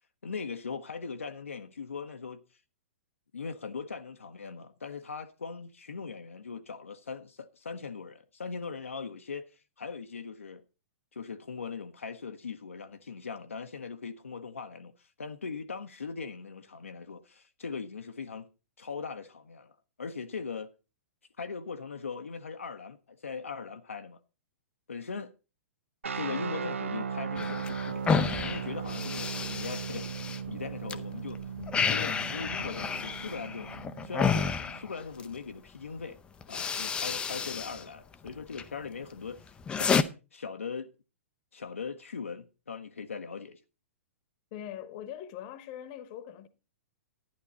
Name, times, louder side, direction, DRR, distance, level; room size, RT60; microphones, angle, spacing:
voice 1, 0.2-2.4 3.3-10.6 11.1-18.5 18.8-20.7 21.4-24.2 24.9-25.3 26.1-31.4 31.7-36.2 36.5-40.0 40.3-40.9 41.5-43.6, left 5 dB, 75° left, 0.8 m, -40 dB
sound 1, 26.0-34.9, right 6 dB, 70° right, 0.7 m, -37 dB
sound 2, 27.4-31.0 31.3-35.4 36.0-36.1 36.4-37.8 38.1-38.7 39.1-40.0, left 6 dB, 15° left, 0.6 m, -31 dB
voice 2, 31.6-31.9 44.5-46.5, left 10 dB, 40° left, 1.1 m, -42 dB
11.5 x 10.5 x 4.2 m
figure-of-eight pair, 110°, 7 cm